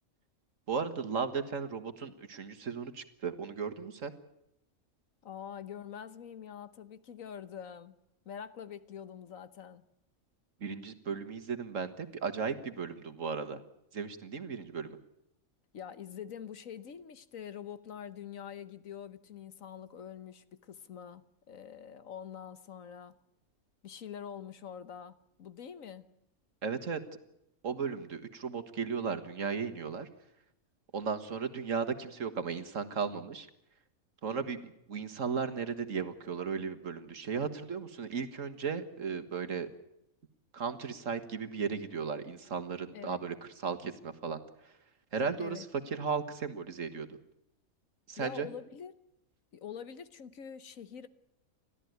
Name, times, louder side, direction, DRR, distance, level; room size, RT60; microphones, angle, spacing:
voice 1, 0.7-4.1 10.6-13.6 13.9-15.0 26.6-27.0 27.6-30.1 30.9-33.5 34.2-39.7 40.5-43.4 43.6-44.4 45.1-47.1 48.1-48.5, right 5 dB, 65° right, 1.9 m, -35 dB
voice 2, 5.2-7.9 8.2-9.8 15.7-23.2 23.8-26.1 42.9-43.2 45.4-45.7 48.2-48.9 49.5-51.1, left 8 dB, 70° left, 1.5 m, -45 dB
29.5 x 13.5 x 9.4 m
omnidirectional pair, 1.5 m